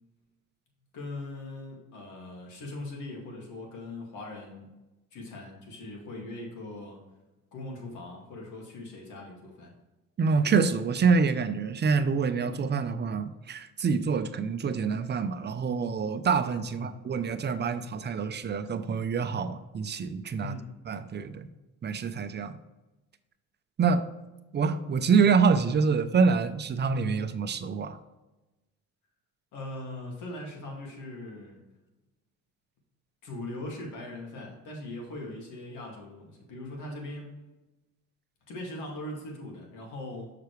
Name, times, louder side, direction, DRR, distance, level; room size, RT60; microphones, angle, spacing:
voice 1, 0.9-4.7 5.1-7.0 7.5-9.7 16.7-17.0 20.4-20.7 29.5-31.6 33.2-37.4 38.5-40.3, left 2 dB, 80° left, 0 dB, 2.2 m, -40 dB
voice 2, 10.2-20.5 20.9-21.5 21.8-22.6 23.8-24.0 24.5-28.0, right 5 dB, 35° right, 11 dB, 0.6 m, -26 dB
6.6 x 5.8 x 3.2 m, 1.0 s
cardioid pair, 100°, 30 cm